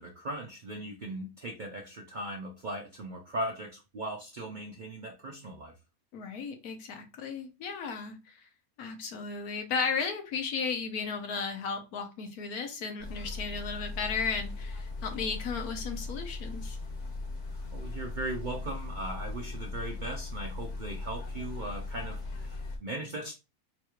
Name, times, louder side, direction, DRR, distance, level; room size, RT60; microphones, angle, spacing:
voice 1, 0.0-5.7 17.5-23.3, right 1 dB, 60° right, 1 dB, 0.5 m, -38 dB
voice 2, 6.1-8.4 8.8-16.8, left 5 dB, 80° left, 6 dB, 1.3 m, -35 dB
sound 1, 13.0-22.8, left 3 dB, 55° left, 1.2 m, -38 dB
3.9 x 2.4 x 3.0 m, 0.28 s
omnidirectional pair, 1.5 m